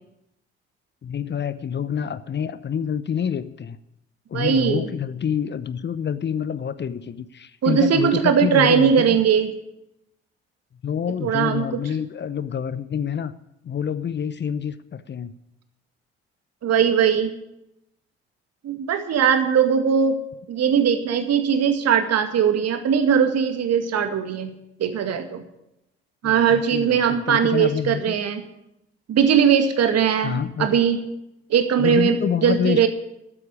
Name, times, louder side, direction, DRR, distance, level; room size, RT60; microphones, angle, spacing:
voice 1, 1.0-3.8 4.3-9.2 10.8-13.3 13.6-15.3 26.2-28.2 30.2-30.8 31.8-32.9, left 8 dB, 35° left, 16 dB, 0.8 m, -27 dB
voice 2, 4.3-4.9 7.6-9.5 11.2-11.7 16.6-17.3 18.6-20.2 20.5-24.5 24.8-25.4 26.2-28.4 29.1-31.0 31.5-32.2 32.4-32.9, right 7 dB, 50° right, 7 dB, 2.0 m, -20 dB
13.5 x 8.6 x 9.9 m, 0.87 s
figure-of-eight pair, 45°, 31 cm